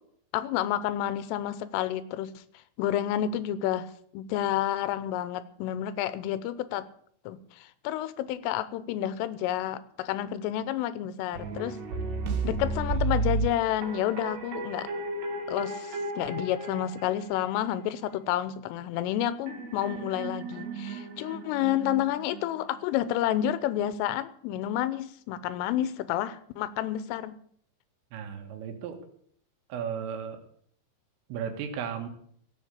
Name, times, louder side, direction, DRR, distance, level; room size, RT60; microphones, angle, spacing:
voice 1, 0.3-2.4 2.8-6.9 7.3-11.8 12.4-14.9 15.5-27.4, left 12 dB, 85° left, 15 dB, 3.4 m, -30 dB
sound 1, 11.3-17.7 19.1-22.8, right 3 dB, 60° right, 3.8 m, -34 dB
voice 2, 28.1-29.0 29.7-30.4 31.3-32.1, right 7 dB, 85° right, 6 dB, 4.4 m, -35 dB
16.0 x 8.1 x 8.4 m, 0.62 s
omnidirectional pair, 5.7 m